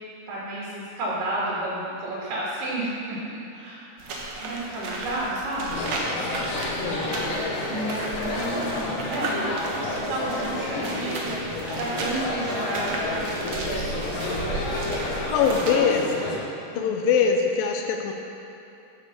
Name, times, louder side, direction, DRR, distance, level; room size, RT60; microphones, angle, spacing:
voice 1, 0.3-3.2 3.5-3.8 4.4-5.9 7.7-13.3 13.7-14.9 15.7-15.9 16.7-17.0, right 1 dB, 70° right, -7 dB, 4.2 m, -32 dB
sound 1, 4.0-15.7, right 2 dB, 85° right, 1.4 m, -34 dB
sound 2, 5.7-16.4, left 2 dB, 60° left, 2.7 m, -30 dB
voice 2, 15.3-16.0 16.7-18.1, left 6 dB, 85° left, 3 dB, 2.0 m, -22 dB
10.5 x 6.9 x 6.8 m, 2.8 s
omnidirectional pair, 5.0 m